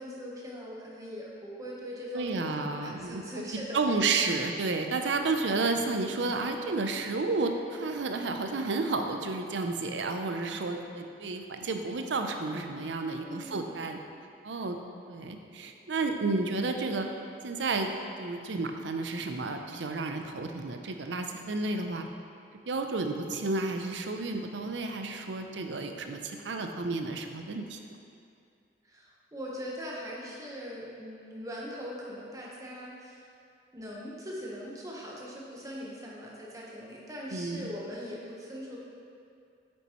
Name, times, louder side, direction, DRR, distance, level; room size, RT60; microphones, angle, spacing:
voice 1, 0.0-3.8 13.2-13.7 28.9-33.3 33.7-38.8, equal, 20° right, -4 dB, 1.2 m, -41 dB
voice 2, 2.1-3.2 3.7-14.0 14.4-14.8 15.1-17.1 17.4-17.9 18.2-22.1 22.7-27.8 37.3-37.7, right 3 dB, 85° right, 5 dB, 0.6 m, -31 dB
7.9 x 7.0 x 3.1 m, 2.5 s
head